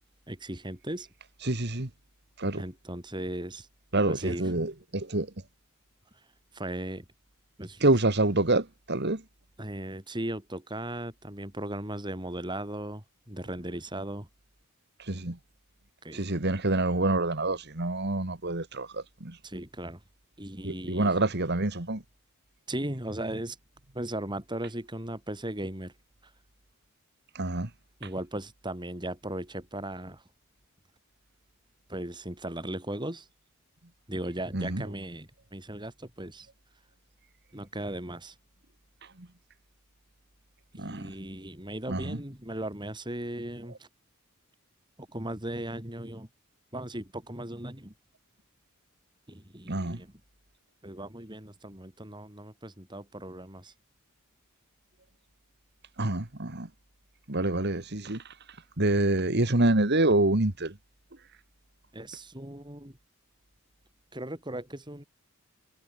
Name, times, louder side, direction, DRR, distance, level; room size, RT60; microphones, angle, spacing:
voice 1, 0.3-1.1 2.5-3.7 4.1-4.5 6.5-7.0 7.6-7.8 9.6-14.3 16.0-16.2 19.4-20.0 20.4-21.1 22.7-23.6 23.9-25.9 28.0-30.2 31.9-33.3 34.1-36.5 37.5-38.3 40.7-43.9 45.0-46.3 46.7-47.9 49.3-50.1 50.8-53.7 61.9-63.0 64.1-65.0, right 1 dB, 20° right, 4.5 m, -37 dB
voice 2, 1.4-1.9 2.4-2.6 3.9-5.3 7.8-9.2 15.1-15.4 16.1-19.4 20.6-22.0 27.4-27.7 34.5-34.8 39.2-39.3 40.7-41.1 41.9-42.2 49.7-50.0 56.0-56.7 57.3-58.2 58.8-60.8, right 2 dB, 50° right, 2.0 m, -27 dB
head